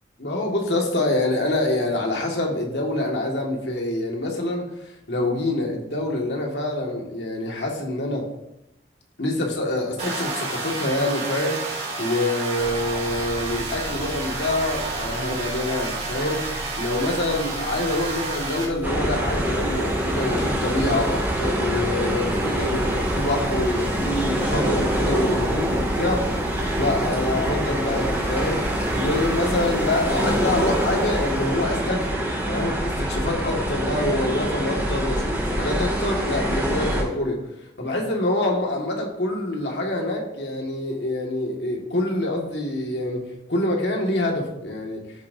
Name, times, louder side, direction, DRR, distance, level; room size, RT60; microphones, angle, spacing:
voice 1, 0.2-4.7 5.1-8.3 9.2-26.3 26.5-28.7 28.9-37.4 37.8-45.0, left 1 dB, 75° left, 0 dB, 2.1 m, -26 dB
sound 1, 10.0-18.6, right 3 dB, 40° right, 3.2 m, -30 dB
sound 2, 12.6-31.7, equal, 20° left, 3.8 m, -38 dB
sound 3, 18.8-37.0, right 1 dB, 10° right, 2.3 m, -25 dB
13.5 x 7.5 x 2.8 m, 0.86 s
head